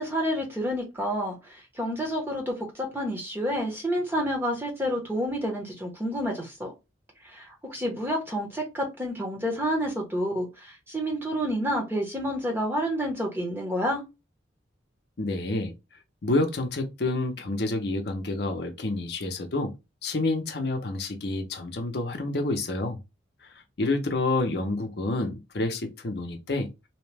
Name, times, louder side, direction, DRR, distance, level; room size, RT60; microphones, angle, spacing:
voice 1, 0.0-6.7 7.2-14.0, equal, 10° right, 0.8 m, -29 dB
voice 2, 15.2-15.7 16.2-19.7 20.0-23.0 23.4-26.7, left 2 dB, 55° left, 0.6 m, -28 dB
2.8 x 2.1 x 3.2 m
head